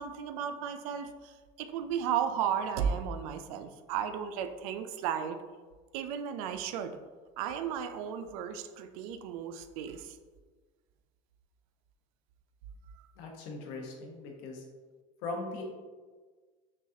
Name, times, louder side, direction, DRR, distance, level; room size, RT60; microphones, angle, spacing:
voice 1, 0.0-1.3 1.6-5.4 5.9-7.0 7.4-10.1, right 8 dB, 85° right, 9 dB, 0.4 m, -34 dB
voice 2, 13.2-14.6 15.2-15.6, left 3 dB, 75° left, 1 dB, 1.0 m, -39 dB
6.0 x 2.4 x 2.7 m, 1.4 s
supercardioid pair, 130°, 18 cm